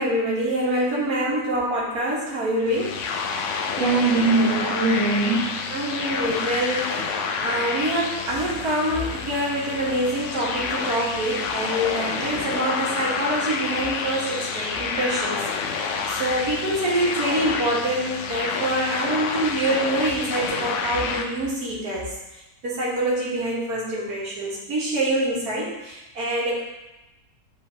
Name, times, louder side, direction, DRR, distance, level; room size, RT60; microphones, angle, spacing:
voice 1, 0.0-3.0 5.7-26.6, right 1 dB, 75° right, -5 dB, 2.0 m, -26 dB
sound 1, 2.6-21.3, left 5 dB, 65° left, 0.8 m, -29 dB
voice 2, 3.8-5.8, right 3 dB, 45° right, -5 dB, 1.4 m, -21 dB
9.7 x 3.9 x 2.8 m, 0.98 s
omnidirectional pair, 1.6 m